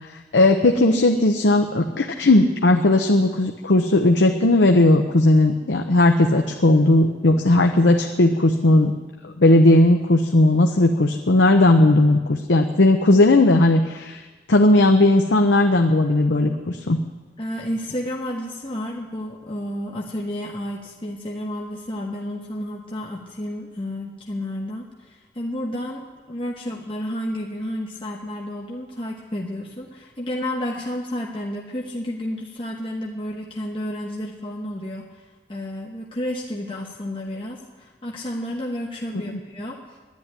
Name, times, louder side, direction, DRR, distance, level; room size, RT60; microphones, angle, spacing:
voice 1, 0.1-8.9 9.2-14.2 14.5-17.0 39.1-39.4, left 2 dB, 90° left, 4 dB, 0.8 m, -17 dB
voice 2, 17.4-40.0, left 1 dB, 30° left, -1 dB, 1.1 m, -31 dB
10.5 x 10.5 x 9.9 m, 1.3 s
head